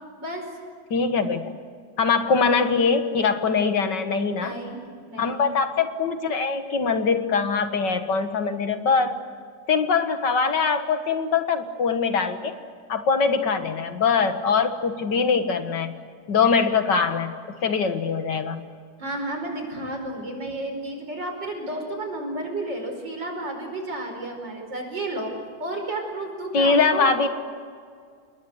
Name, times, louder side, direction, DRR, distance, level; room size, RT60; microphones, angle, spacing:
voice 1, 0.9-1.5 2.0-4.6 5.2-9.1 9.7-12.5 12.9-16.0 16.3-17.3 17.6-18.6 26.5-27.3, left 5 dB, 65° left, 8 dB, 2.3 m, -22 dB
voice 2, 4.3-5.5 19.0-25.3 25.6-27.2, right 1 dB, 70° right, 4 dB, 5.8 m, -32 dB
28.5 x 21.5 x 8.0 m, 2.1 s
omnidirectional pair, 2.0 m